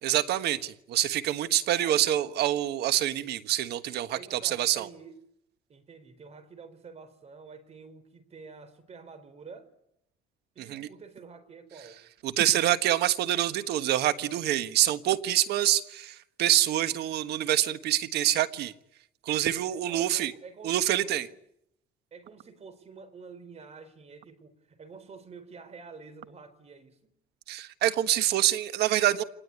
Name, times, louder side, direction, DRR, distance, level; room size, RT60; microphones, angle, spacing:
voice 1, 0.0-4.9 10.6-10.9 12.2-18.7 19.2-20.3 20.6-21.3 27.5-29.2, right 12 dB, 75° right, 12 dB, 1.5 m, -26 dB
voice 2, 1.7-2.1 4.1-5.1 5.7-9.7 10.5-12.0 19.6-21.3 22.1-27.1, right 5 dB, 40° right, 13 dB, 4.0 m, -48 dB
26.0 x 19.5 x 9.5 m, 0.79 s
cardioid pair, 110°, 17 cm